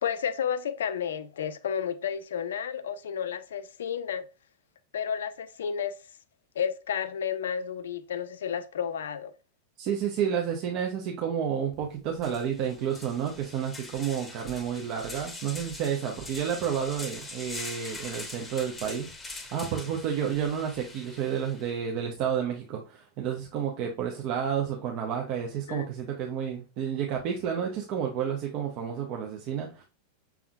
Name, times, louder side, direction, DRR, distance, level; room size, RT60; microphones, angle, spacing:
voice 1, 0.0-4.3 4.9-6.0 6.6-9.3 25.7-25.9, left 8 dB, 60° left, 0.4 m, -31 dB
voice 2, 9.8-19.1 19.5-29.8, right 8 dB, 40° right, 0.7 m, -30 dB
sound 1, 11.7-11.8 12.2-21.7, left 2 dB, 10° left, 0.9 m, -43 dB
6.0 x 3.5 x 2.2 m
figure-of-eight pair, 90°, 0 cm